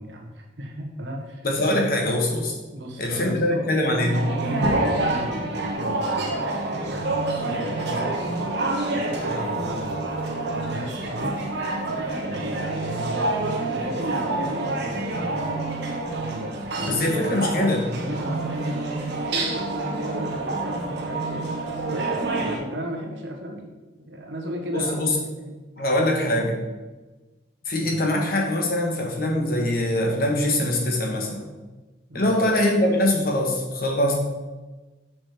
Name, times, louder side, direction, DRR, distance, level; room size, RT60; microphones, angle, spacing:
voice 1, 0.0-1.5 2.7-3.7 4.1-8.5 8.9-11.4 12.2-15.7 16.2-17.5 18.0-21.5 21.9-23.7 24.0-25.6 27.8-28.0 32.1-32.5, equal, 80° right, 1 dB, 1.5 m, -35 dB
voice 2, 1.4-2.5 3.0-4.2 16.9-17.9 24.7-25.2 25.8-26.5 27.6-31.4 32.1-34.2, left 1 dB, 50° left, 0 dB, 1.6 m, -23 dB
sound 1, 4.0-22.6, right 2 dB, 65° right, 1.3 m, -27 dB
6.1 x 6.1 x 4.9 m, 1.2 s
head